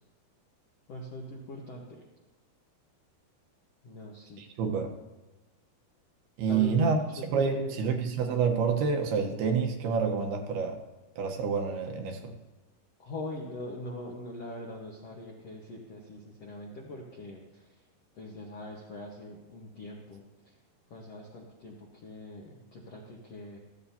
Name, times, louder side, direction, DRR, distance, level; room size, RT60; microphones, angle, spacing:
voice 1, 0.9-2.0 3.8-4.4 4.7-4.8 6.5-6.9 7.4-7.9 13.0-17.6 18.2-20.2 20.9-23.6, left 1 dB, 70° left, -2 dB, 1.5 m, -42 dB
voice 2, 4.4-4.9 6.4-7.0 7.3-10.8 11.2-12.3, right 5 dB, 75° right, 3 dB, 3.0 m, -28 dB
15.5 x 14.0 x 2.8 m, 1.1 s
omnidirectional pair, 4.8 m